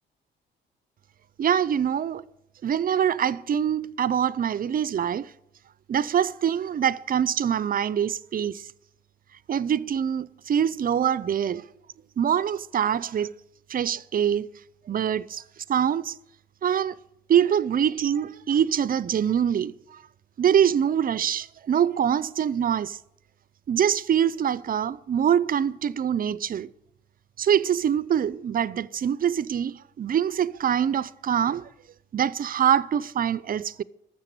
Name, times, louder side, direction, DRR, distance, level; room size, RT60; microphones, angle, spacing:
voice 1, 1.4-2.2 2.6-5.3 5.9-8.6 9.5-11.6 12.2-13.3 13.7-14.5 14.9-15.4 15.7-16.1 16.6-16.9 17.3-19.7 20.4-23.0 23.7-26.7 27.4-31.6 32.1-33.8, right 9 dB, 45° right, 0.6 m, -24 dB
12.5 x 7.5 x 9.8 m
cardioid pair, 90°, 20 cm